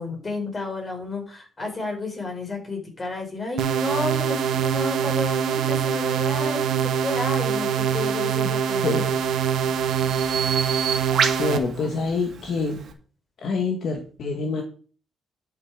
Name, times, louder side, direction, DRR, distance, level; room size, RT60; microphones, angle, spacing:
voice 1, 0.0-9.0 11.8-11.9, left 2 dB, 30° left, 2 dB, 4.8 m, -31 dB
sound 1, 3.6-11.6, right 8 dB, 75° right, 1.4 m, -24 dB
Bird vocalization bird call bird song, 8.7-12.9, right 6 dB, 60° right, 2.4 m, -30 dB
voice 2, 10.2-11.0 11.4-12.8 13.4-14.6, left 4 dB, 65° left, 3 dB, 1.6 m, -27 dB
11.0 x 6.3 x 4.9 m, 0.40 s
cardioid pair, 90°, 0 cm